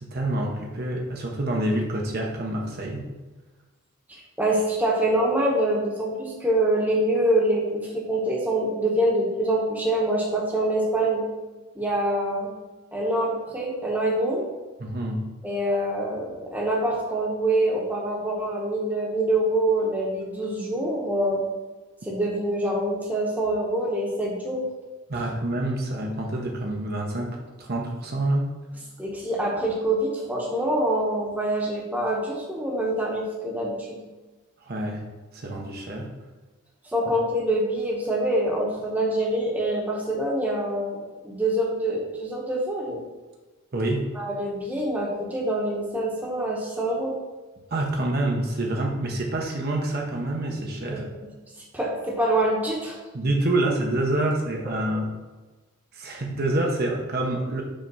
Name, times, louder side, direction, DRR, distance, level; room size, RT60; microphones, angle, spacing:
voice 1, 0.0-3.1 14.8-15.2 25.1-28.5 34.7-35.0 35.3-36.1 43.7-44.1 47.7-51.1 53.1-55.1 55.9-57.6, right 1 dB, 45° right, 0 dB, 0.8 m, -27 dB
voice 2, 4.1-11.3 11.7-12.5 12.9-14.4 15.4-21.4 22.0-24.6 29.0-34.0 36.9-43.0 44.1-47.2 50.9-51.0 51.7-53.0, right 1 dB, 10° right, -2 dB, 1.0 m, -25 dB
5.3 x 3.3 x 5.5 m, 1.2 s
head